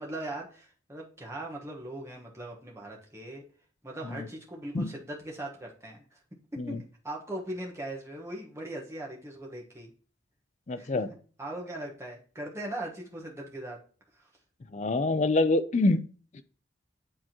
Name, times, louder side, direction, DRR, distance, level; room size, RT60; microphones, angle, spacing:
voice 1, 0.0-3.4 3.8-6.0 6.5-6.8 7.0-9.9 10.8-10.9 11.4-13.8, right 1 dB, 15° right, -2 dB, 1.2 m, -39 dB
voice 2, 10.7-11.1 14.7-16.0, left 2 dB, 35° left, 11 dB, 0.4 m, -26 dB
9.8 x 3.7 x 2.9 m, 0.41 s
head